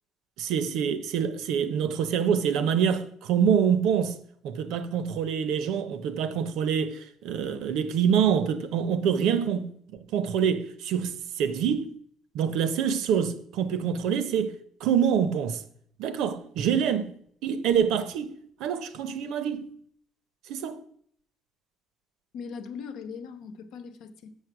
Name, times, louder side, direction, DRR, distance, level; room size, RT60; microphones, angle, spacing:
voice 1, 0.4-4.2 4.4-9.7 10.1-11.9 12.3-15.6 16.0-17.1 17.4-18.3 18.6-19.7 20.5-20.8, right 8 dB, 80° right, 0.8 m, -26 dB
voice 2, 22.3-24.4, left 6 dB, 75° left, 0.9 m, -40 dB
7.1 x 6.5 x 5.9 m
cardioid pair, 135°, 0 cm